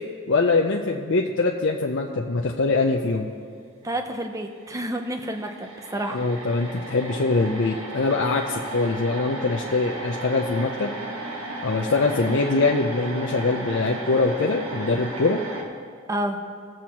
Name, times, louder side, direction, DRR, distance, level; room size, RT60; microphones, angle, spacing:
voice 1, 0.3-3.3 6.1-10.9 11.6-15.4, left 3 dB, 65° left, 0 dB, 0.5 m, -23 dB
voice 2, 3.8-6.2 12.3-12.4 16.1-16.4, right 1 dB, 15° right, 6 dB, 0.6 m, -29 dB
sound 1, 4.3-4.4 4.6-15.6, right 2 dB, 85° right, 1.4 m, -35 dB
18.5 x 7.5 x 2.9 m, 2.2 s
head